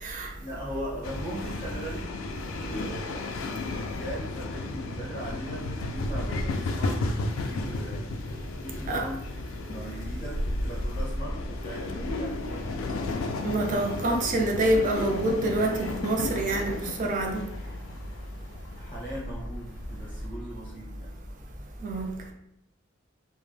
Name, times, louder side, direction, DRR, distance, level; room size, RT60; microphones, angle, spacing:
voice 1, 0.4-8.2 8.6-9.3 9.7-12.8 18.8-21.2, right 1 dB, 25° left, -6 dB, 0.5 m, -39 dB
sound 1, 1.0-20.3, left 2 dB, 80° left, 0.3 m, -33 dB
voice 2, 13.4-16.7 17.0-17.4 21.8-22.1, right 2 dB, 40° right, 1 dB, 0.4 m, -26 dB
2.1 x 2.0 x 3.1 m, 0.79 s
head